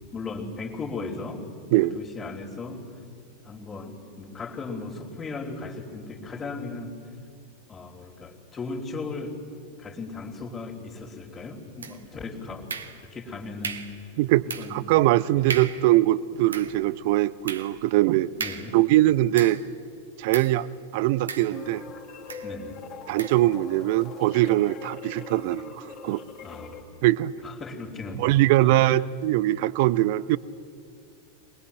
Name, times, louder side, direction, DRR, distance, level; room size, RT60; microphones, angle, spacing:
voice 1, 0.1-1.4 1.8-2.8 3.4-6.9 7.7-9.4 9.8-14.1 14.4-14.8 15.3-15.5 18.4-18.8 22.4-22.8 26.4-26.9 27.4-29.0, left 3 dB, 20° left, -7 dB, 3.2 m, -37 dB
sound 1, 11.8-12.2 12.7-13.2 13.6-14.0 14.5-14.8 15.1-15.2 15.5-15.9 16.3-19.8 20.3-20.6 21.3-21.9 22.3-22.5 23.2-23.5, right 6 dB, 70° right, 1.4 m, -36 dB
voice 2, 14.2-18.3 18.7-19.6 20.2-20.7 20.9-21.8 23.1-26.2 27.0-27.3 28.1-30.4, right 16 dB, 50° right, 19 dB, 0.6 m, -22 dB
sound 2, 21.5-26.8, left 5 dB, 35° left, 2.8 m, -42 dB
23.5 x 20.5 x 9.3 m, 2.4 s
figure-of-eight pair, 90°, 0 cm